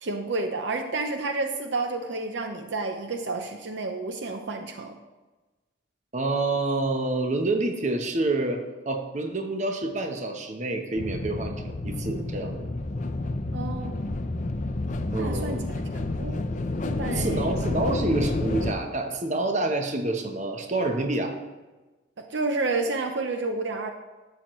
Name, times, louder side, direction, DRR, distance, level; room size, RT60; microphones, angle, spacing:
voice 1, 0.0-5.0 13.5-14.0 15.2-15.6 16.2-16.4 16.8-17.8 22.2-23.9, right 3 dB, 65° right, 5 dB, 0.7 m, -30 dB
voice 2, 6.1-12.6 15.1-15.6 17.1-21.4, right 2 dB, 35° right, 4 dB, 0.9 m, -28 dB
sound 1, 11.0-18.7, left 2 dB, 40° left, 0.5 m, -30 dB
11.0 x 7.6 x 3.1 m, 1.2 s
head